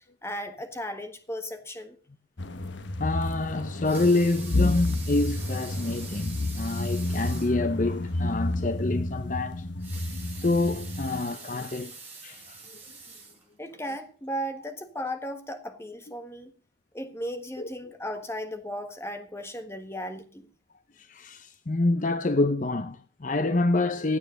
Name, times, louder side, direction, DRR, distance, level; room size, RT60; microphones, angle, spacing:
voice 1, 0.2-2.0 13.6-16.5 16.9-20.5, equal, 15° left, 1.5 m, -36 dB
sound 1, 2.4-11.2, left 2 dB, 75° left, 1.2 m, -30 dB
voice 2, 3.0-9.7 10.4-11.9 12.2-12.6 17.6-17.7 21.0-24.2, left 2 dB, 40° left, 0.7 m, -27 dB
Water tap faucet / Sink (filling or washing) / Liquid, 3.8-7.6 8.1-8.2 8.5-8.6 9.7-13.8 14.4-14.5, right 4 dB, 10° right, 6.4 m, -44 dB
16.5 x 8.7 x 6.4 m
head